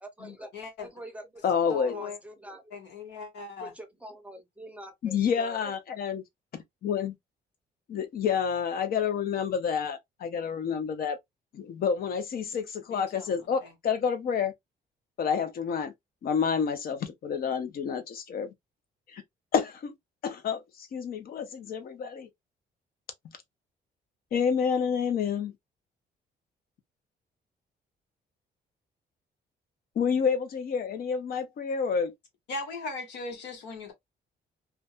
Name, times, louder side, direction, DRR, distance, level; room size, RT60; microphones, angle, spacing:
voice 1, 0.0-0.5 0.8-1.4 1.7-2.8 3.6-5.7, right 1 dB, 5° right, 0.6 m, -45 dB
voice 2, 0.5-0.9 1.7-2.2 2.7-3.7 12.9-13.3 13.6-13.7 32.5-33.9, left 3 dB, 85° left, 1.1 m, -38 dB
voice 3, 1.4-2.0 5.1-6.2 6.8-7.1 7.9-11.2 11.5-14.5 15.2-15.9 16.2-18.5 19.1-19.2 19.5-19.9 20.2-22.3 24.3-25.5 30.0-32.1, left 6 dB, 60° left, 0.7 m, -29 dB
2.5 x 2.2 x 2.4 m
cardioid pair, 125°, 18 cm